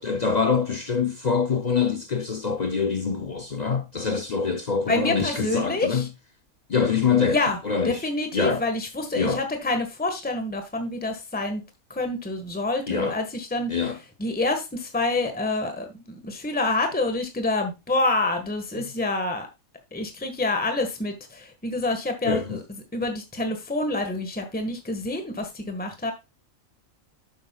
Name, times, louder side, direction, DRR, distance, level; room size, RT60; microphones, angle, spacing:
voice 1, 0.0-6.1 6.7-7.4 7.6-8.0 8.3-8.6 9.1-9.4 12.9-13.2 13.7-14.0 22.3-22.6, left 5 dB, 45° left, 0.5 m, -24 dB
voice 2, 4.9-6.1 7.3-7.6 7.8-11.6 11.9-13.7 14.2-19.5 19.9-22.6 22.9-26.1, left 2 dB, 5° left, 1.4 m, -27 dB
10.5 x 7.8 x 2.3 m
omnidirectional pair, 1.4 m